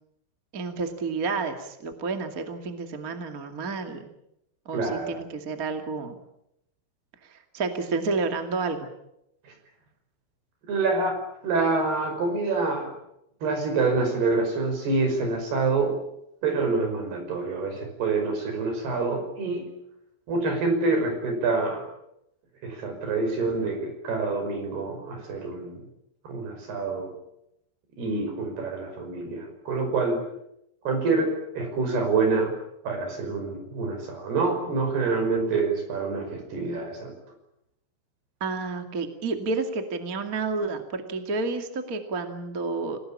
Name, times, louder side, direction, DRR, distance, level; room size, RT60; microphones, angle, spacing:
voice 1, 0.5-4.1 4.6-6.1 7.3-8.9 38.4-43.0, right 4 dB, 30° right, 6 dB, 1.6 m, -30 dB
voice 2, 4.7-5.2 10.7-11.2 11.4-12.9 13.4-16.0 16.4-19.7 20.3-21.8 22.6-25.8 26.3-27.1 28.0-30.2 30.9-32.5 32.8-37.1, right 3 dB, 60° right, 5 dB, 7.4 m, -26 dB
29.0 x 18.0 x 8.8 m, 0.82 s
omnidirectional pair, 5.3 m